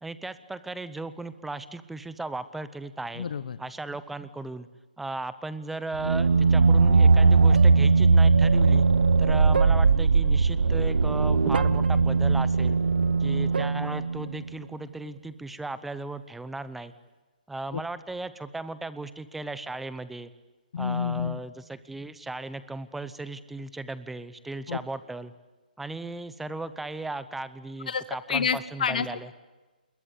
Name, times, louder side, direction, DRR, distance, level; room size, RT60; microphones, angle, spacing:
voice 1, 0.0-3.3 3.6-4.7 5.0-8.9 9.2-12.8 13.2-16.9 17.5-20.3 20.8-25.3 25.8-29.3, right 2 dB, 5° right, 13 dB, 0.8 m, -36 dB
voice 2, 3.2-3.6 17.7-17.8 20.7-21.4 24.7-24.8 27.9-28.0 28.3-29.3, left 7 dB, 60° left, 13 dB, 1.2 m, -29 dB
sound 1, 5.9-14.5, right 4 dB, 90° right, 1.2 m, -20 dB
26.5 x 22.0 x 8.4 m, 1.2 s
hypercardioid pair, 165°, 5 cm